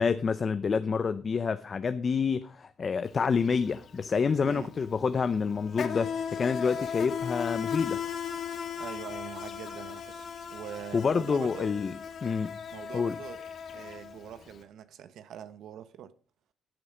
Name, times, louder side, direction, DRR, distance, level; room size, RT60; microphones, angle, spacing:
voice 1, 0.0-8.0 10.9-12.6 12.9-13.2, left 5 dB, 35° left, 0.6 m, -28 dB
Insect, 3.1-3.3 3.5-14.5, left 7 dB, 50° left, 1.7 m, -37 dB
voice 2, 8.8-11.7 12.7-13.4 13.7-16.1, right 9 dB, 70° right, 1.0 m, -43 dB
14.0 x 7.4 x 5.0 m
cardioid pair, 130°, 0 cm